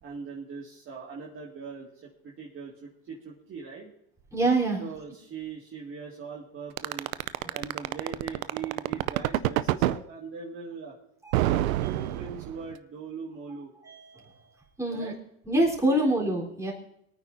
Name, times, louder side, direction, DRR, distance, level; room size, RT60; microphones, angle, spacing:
voice 1, 0.0-3.9 4.8-7.1 7.5-11.0 11.4-13.7 14.9-15.1 15.9-16.2, right 5 dB, 30° right, -3 dB, 2.1 m, -41 dB
voice 2, 4.3-4.8 7.4-7.5 11.3-11.5 13.8-14.2 14.8-15.1 15.5-16.7, right 1 dB, 5° right, -2 dB, 3.9 m, -26 dB
sound 1, 6.8-10.0 11.3-12.7, right 15 dB, 80° right, 0.6 m, -26 dB
23.5 x 9.4 x 2.7 m, 0.75 s
supercardioid pair, 110°, 40 cm